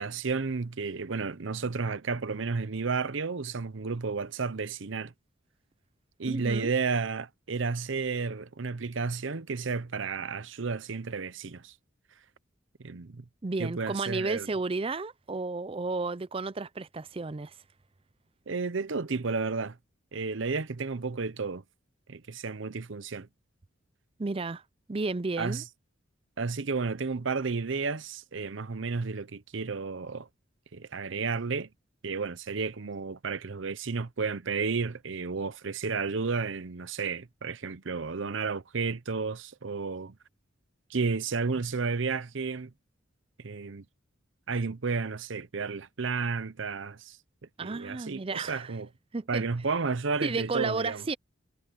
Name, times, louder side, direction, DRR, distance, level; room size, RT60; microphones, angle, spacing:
voice 1, 0.0-5.1 6.2-11.7 12.8-13.2 13.6-14.5 18.5-19.8 20.1-21.6 22.1-23.3 25.4-25.6 26.4-30.3 30.7-31.7 32.0-40.2 40.9-42.7 43.4-43.8 44.5-47.2 47.6-48.9 49.3-51.0, right 4 dB, 70° right, 0.8 m, -32 dB
voice 2, 6.2-6.7 13.4-17.5 24.2-24.6 24.9-25.6 47.6-48.7 49.1-49.4 50.2-51.1, right 3 dB, 30° right, 0.5 m, -32 dB
head